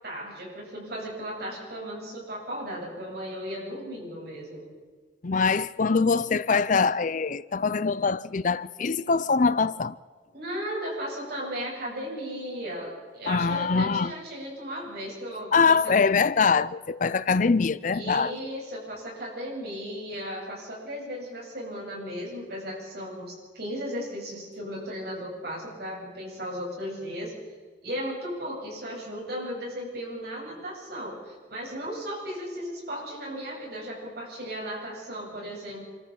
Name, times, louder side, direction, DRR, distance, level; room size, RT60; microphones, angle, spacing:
voice 1, 0.0-4.7 10.3-15.9 17.9-27.3 27.8-35.8, equal, 55° right, 8.0 m, -36 dB
voice 2, 5.2-9.9 13.3-14.1 15.5-18.3, left 5 dB, 45° left, 0.5 m, -23 dB
26.0 x 14.0 x 7.4 m
head